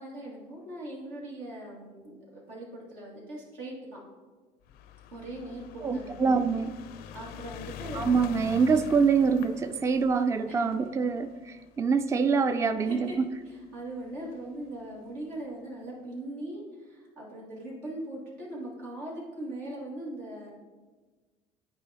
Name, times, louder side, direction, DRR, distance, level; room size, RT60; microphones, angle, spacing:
voice 1, 0.0-4.0 5.1-6.3 7.1-8.0 10.5-10.6 12.8-13.2 13.5-20.5, right 1 dB, 85° right, -4 dB, 1.9 m, -40 dB
sound 1, 4.6-13.1 14.0-14.1 14.3-14.4 14.6-14.7, left 8 dB, 75° left, 0.4 m, -44 dB
voice 2, 5.8-6.7 7.9-13.3, right 5 dB, 20° right, 9 dB, 0.3 m, -25 dB
8.9 x 4.7 x 2.8 m, 1.3 s
supercardioid pair, 75°, 16 cm